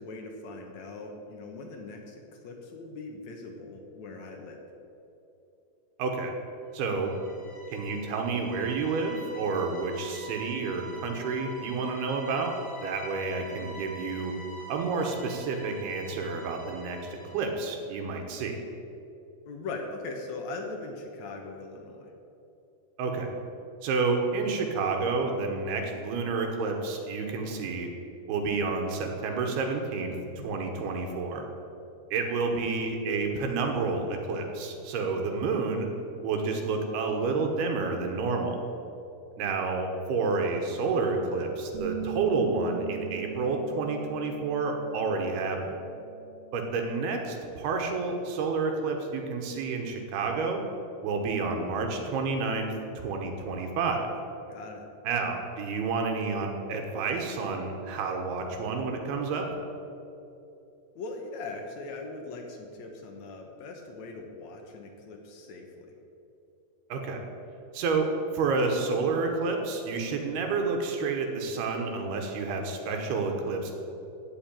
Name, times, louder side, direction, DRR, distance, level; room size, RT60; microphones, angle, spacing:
voice 1, 0.0-4.6 19.5-22.1 54.5-54.9 60.9-65.9, left 3 dB, 70° left, 2 dB, 1.7 m, -40 dB
voice 2, 6.0-6.3 6.7-7.1 7.7-12.5 12.8-14.3 14.7-18.6 23.0-23.3 23.8-27.9 28.3-31.4 32.1-35.9 36.2-38.6 39.4-45.7 46.5-50.6 51.0-54.1 55.0-59.5 66.9-67.2 67.7-73.8, right 4 dB, 70° right, 3 dB, 3.0 m, -29 dB
sound 1, 6.8-17.6, right 1 dB, 10° left, 2.3 m, -46 dB
sound 2, 41.7-47.1, right 12 dB, 90° right, 1.4 m, -41 dB
16.0 x 5.5 x 8.9 m, 2.8 s
omnidirectional pair, 5.0 m